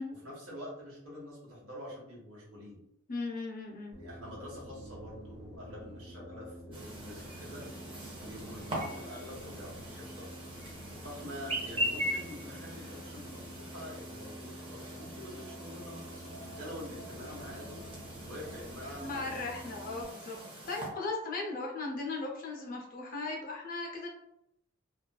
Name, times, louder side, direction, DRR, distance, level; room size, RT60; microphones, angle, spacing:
voice 1, 0.2-2.8 4.0-7.6 8.2-10.3 11.0-17.8 18.2-19.5, equal, 85° right, -5 dB, 1.2 m, -46 dB
voice 2, 3.1-3.9 19.0-20.4 20.7-24.1, left 3 dB, 40° left, -1 dB, 0.5 m, -37 dB
sound 1, 3.9-20.0, equal, ahead, 0.8 m, -49 dB
Chirp tweet, 6.7-20.9, equal, 25° right, 0.6 m, -41 dB
2.5 x 2.3 x 2.3 m, 0.79 s
head